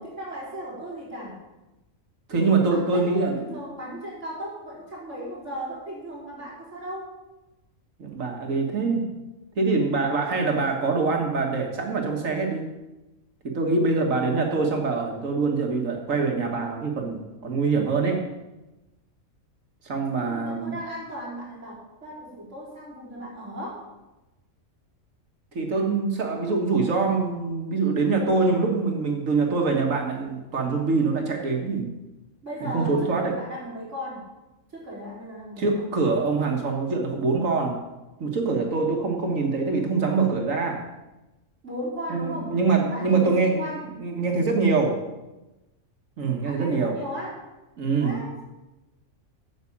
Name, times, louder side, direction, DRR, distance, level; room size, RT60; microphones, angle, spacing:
voice 1, 0.0-1.4 2.7-7.1 20.1-23.9 32.4-34.3 34.7-35.9 41.6-42.6 42.9-43.9 46.4-47.4 48.0-48.4, equal, 65° right, -5 dB, 4.1 m, -36 dB
voice 2, 2.3-3.4 8.0-9.1 9.6-12.7 13.4-18.2 19.8-20.7 25.5-31.9 32.7-33.4 35.6-37.8 38.2-40.9 42.1-43.7 44.0-45.1 46.2-47.0 47.8-48.2, right 4 dB, 80° right, 1 dB, 1.9 m, -24 dB
9.3 x 7.2 x 8.6 m, 1.0 s
omnidirectional pair, 1.3 m